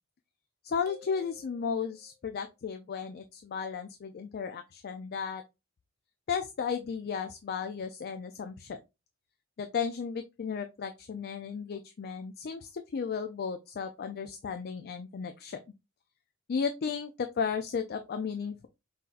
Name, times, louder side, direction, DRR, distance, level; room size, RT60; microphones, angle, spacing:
voice 1, 0.6-5.4 6.3-8.8 9.6-15.6 16.5-18.7, left 6 dB, 50° left, 7 dB, 0.4 m, -34 dB
sound 1, 0.9-2.4, left 5 dB, 50° right, 0.9 m, -54 dB
5.7 x 2.8 x 2.4 m, 0.25 s
head